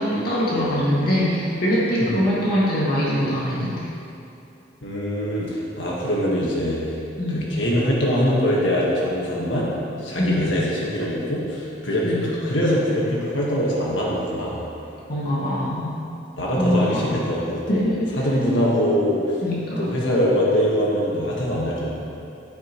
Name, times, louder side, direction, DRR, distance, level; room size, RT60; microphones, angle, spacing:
voice 1, 0.0-3.9 7.2-7.4 10.2-10.5 12.0-12.2 15.1-15.9 16.6-17.2 17.7-18.1 19.4-19.9, equal, 55° left, -7 dB, 2.1 m, -23 dB
voice 2, 4.8-6.8 7.3-9.7 10.0-14.6 16.4-19.4 19.8-21.9, equal, 70° left, -5 dB, 1.7 m, -23 dB
11.5 x 9.7 x 3.2 m, 2.7 s
head